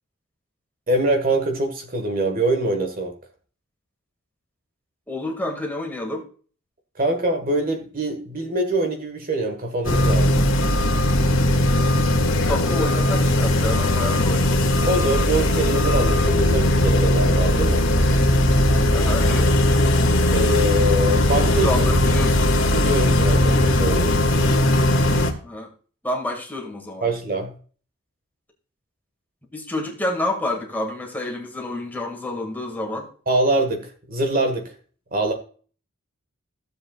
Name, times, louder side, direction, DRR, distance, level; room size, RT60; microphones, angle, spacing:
voice 1, 0.9-3.1 7.0-10.5 14.9-17.8 20.3-21.9 22.7-24.1 27.0-27.5 33.3-34.7 35.1-35.3, right 1 dB, 45° right, 6 dB, 1.5 m, -24 dB
voice 2, 5.1-6.2 12.4-14.9 18.9-19.5 21.6-22.6 25.4-25.7 26.0-27.1 29.5-33.1, left 1 dB, 10° left, 0 dB, 2.0 m, -29 dB
sound 1, 9.8-25.3, left 1 dB, 65° left, 1.7 m, -19 dB
15.5 x 7.6 x 2.4 m, 0.41 s
head